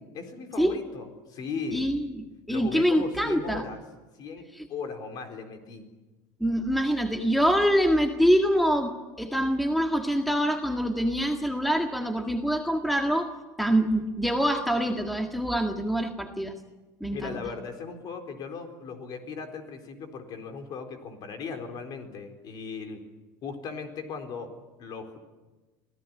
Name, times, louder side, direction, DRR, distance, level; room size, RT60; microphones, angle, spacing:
voice 1, 0.0-1.9 2.5-3.8 4.2-5.9 17.1-23.1 23.4-24.5 24.8-25.2, left 5 dB, 45° left, 6 dB, 4.2 m, -37 dB
voice 2, 1.7-3.6 4.5-4.7 6.4-13.3 13.6-16.5 17.0-17.4, equal, ahead, 4 dB, 1.8 m, -25 dB
25.0 x 16.5 x 9.8 m, 1.2 s
supercardioid pair, 125°, 9 cm